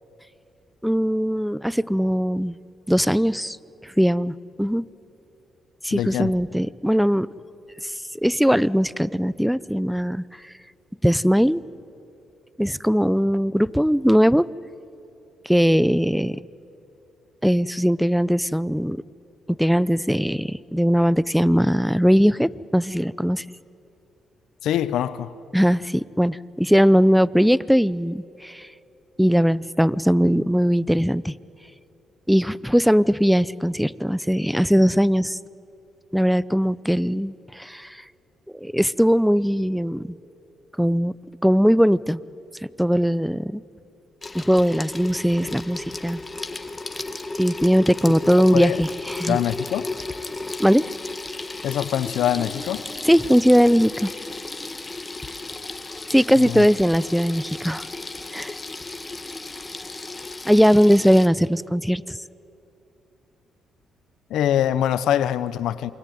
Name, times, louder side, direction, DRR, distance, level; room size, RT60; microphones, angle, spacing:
voice 1, 0.8-2.6 2.9-3.6 3.8-4.9 5.8-7.3 7.8-7.9 8.2-10.2 11.0-11.6 12.6-14.4 15.5-16.4 17.4-19.0 19.6-23.4 25.5-28.7 29.2-31.3 32.3-35.4 36.1-38.0 38.6-40.0 40.8-41.1 41.4-42.2 42.8-43.6 44.3-46.2 47.4-49.4 50.6-50.8 53.1-54.1 56.1-57.8 58.3-58.5 60.4-62.2, equal, ahead, 0.6 m, -20 dB
voice 2, 5.9-6.3 24.6-25.3 48.5-48.8 49.3-49.9 51.6-52.8 56.4-56.7 64.3-65.9, left 11 dB, 80° left, 0.8 m, -24 dB
Water tap faucet / Sink (filling or washing), 44.2-61.3, left 2 dB, 20° left, 1.7 m, -34 dB
28.0 x 23.0 x 9.3 m
cardioid pair, 90°, 0 cm